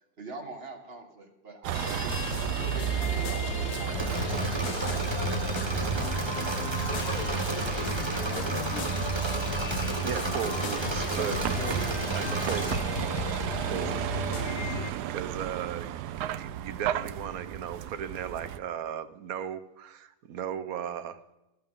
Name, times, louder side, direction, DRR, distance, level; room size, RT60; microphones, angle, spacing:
voice 1, 0.2-2.2 2.6-6.2 11.0-11.9, right 3 dB, 40° right, 3 dB, 1.9 m, -43 dB
Vehicle, 1.6-18.6, right 11 dB, 90° right, 1.2 m, -33 dB
sound 1, 1.7-14.9, left 6 dB, 50° left, 1.0 m, -36 dB
Engine / Mechanisms, 4.0-12.8, right 3 dB, 20° right, 1.1 m, -32 dB
voice 2, 6.9-9.1, left 5 dB, 70° left, 6 dB, 1.9 m, -41 dB
voice 3, 10.0-11.4 12.1-12.7 13.7-13.9 14.6-15.9 16.2-21.2, right 8 dB, 70° right, 13 dB, 1.2 m, -36 dB
13.5 x 12.5 x 3.7 m, 0.95 s
omnidirectional pair, 1.7 m